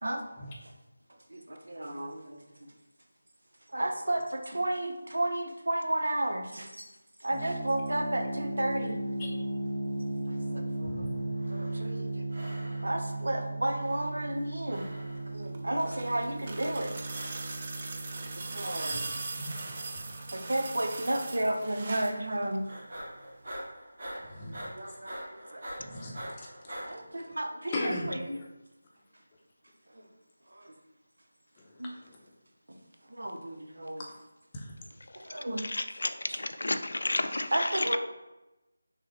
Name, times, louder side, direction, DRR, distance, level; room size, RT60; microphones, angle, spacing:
voice 1, 1.3-2.7 3.7-6.9 7.2-9.0 10.3-11.1 11.5-12.2 12.8-14.9 15.3-16.9 18.3-19.2 20.3-22.6 24.1-26.1 26.8-28.4 29.9-30.1 30.5-30.7 31.8-31.9 32.7-32.8 33.1-34.0 35.2-35.8 36.3-36.4 37.5-38.0, right 1 dB, 80° right, 4 dB, 0.7 m, -33 dB
sound 1, 7.3-22.1, right 1 dB, ahead, 1.0 m, -37 dB
voice 2, 10.3-11.3 18.9-19.1 19.5-20.0 24.3-24.6 25.8-27.2 27.7-28.1 31.6-32.2 34.0-34.1 34.5-34.7, left 2 dB, 20° left, -2 dB, 0.6 m, -40 dB
sound 2, 11.3-12.0 12.3-13.1 13.7-14.4 14.7-15.4 16.0-16.6 17.0-17.7 18.3-18.9 19.4-20.2 20.6-21.1 21.8-22.4 22.7-26.9, equal, 55° right, 1.4 m, -45 dB
sound 3, 15.4-22.2 23.5-23.6, right 3 dB, 35° right, 0.4 m, -40 dB
voice 3, 35.6-37.9, left 2 dB, 75° left, 10 dB, 0.3 m, -32 dB
6.2 x 2.1 x 3.0 m, 0.99 s
figure-of-eight pair, 165°, 0 cm